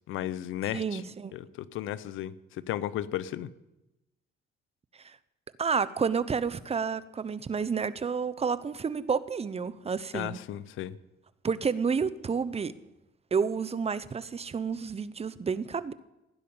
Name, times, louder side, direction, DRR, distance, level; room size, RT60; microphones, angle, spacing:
voice 1, 0.1-1.0 1.3-3.5 10.1-11.0, left 12 dB, 85° left, 17 dB, 0.8 m, -34 dB
voice 2, 0.7-1.3 5.0-5.2 5.6-10.4 11.4-12.7 13.3-15.9, right 6 dB, 30° right, 15 dB, 0.8 m, -30 dB
16.0 x 10.5 x 7.0 m, 0.94 s
cardioid pair, 90°, 20 cm